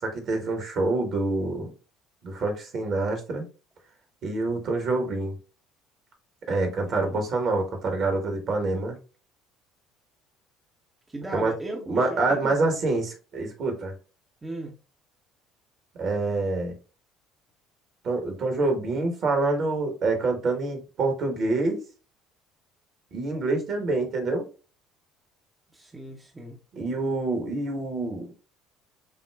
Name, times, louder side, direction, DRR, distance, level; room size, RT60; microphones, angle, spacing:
voice 1, 0.0-1.7 2.2-3.4 4.2-5.3 6.5-9.0 11.3-11.5 11.9-13.9 15.9-16.7 18.0-21.8 23.1-24.4 26.7-28.3, right 3 dB, 50° right, 1.4 m, -26 dB
voice 2, 11.1-12.6 14.4-14.8 25.7-26.6, right 2 dB, 20° right, 0.9 m, -37 dB
6.9 x 2.3 x 2.3 m
figure-of-eight pair, 60°, 0 cm